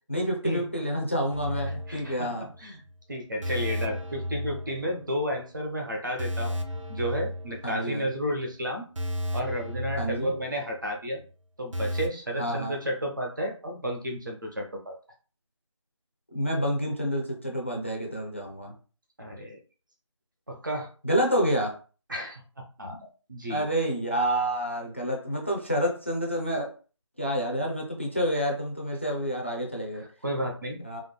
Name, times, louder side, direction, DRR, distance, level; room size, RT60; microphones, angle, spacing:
voice 1, 0.1-2.5 7.6-8.1 10.0-10.3 12.4-12.8 16.3-18.7 21.0-21.8 23.5-26.7 27.2-30.0 30.8-31.0, equal, 25° left, 0 dB, 0.4 m, -28 dB
sound 1, 1.3-2.6 2.9-3.0 3.4-5.3 5.6-5.8 6.2-8.1 8.4-8.5 9.0-10.9 11.2-11.3 11.7-12.1, equal, 75° right, 0.6 m, -34 dB
voice 2, 1.9-2.8 3.1-6.6 6.9-8.9 9.3-11.2 11.6-14.9 19.2-19.6 20.5-20.9 22.1-23.0 23.3-23.7 30.0-31.0, equal, 40° right, 2 dB, 0.7 m, -32 dB
3.6 x 2.2 x 2.2 m, 0.37 s
figure-of-eight pair, 170°, 16 cm